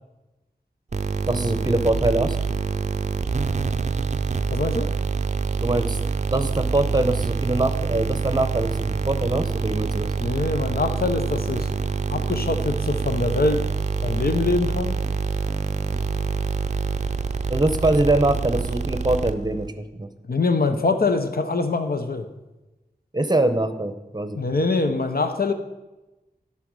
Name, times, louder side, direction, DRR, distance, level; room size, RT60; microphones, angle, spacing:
sound 1, 0.9-19.7, right 5 dB, 45° right, 0.5 m, -26 dB
voice 1, 1.3-2.4 5.6-6.0 6.3-10.1 17.5-20.1 23.1-24.4, right 2 dB, 25° right, 10 dB, 0.8 m, -23 dB
voice 2, 4.5-4.9 10.2-11.7 12.1-13.6 14.0-14.9 20.3-22.3 24.3-25.5, left 3 dB, 70° left, 7 dB, 0.9 m, -23 dB
11.5 x 5.8 x 4.8 m, 1.1 s
wide cardioid pair, 55°, 16 cm